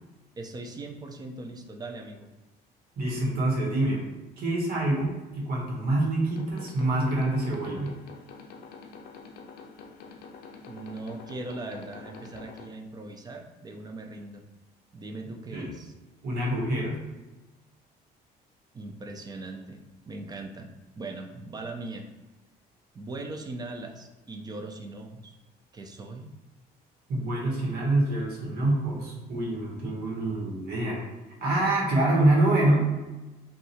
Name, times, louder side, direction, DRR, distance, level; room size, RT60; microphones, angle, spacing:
voice 1, 0.4-2.3 10.7-14.5 14.9-15.9 18.7-22.1 22.9-25.3 25.7-26.3, right 2 dB, 25° right, 3 dB, 0.5 m, -40 dB
voice 2, 3.0-4.1 4.4-8.0 15.5-15.7 16.2-17.0 27.1-31.0 31.4-32.9, right 1 dB, 65° right, -2 dB, 1.2 m, -26 dB
sound 1, 6.2-12.7, left 5 dB, 65° left, 0.5 m, -47 dB
2.6 x 2.4 x 4.1 m, 1.1 s
cardioid pair, 110°, 17 cm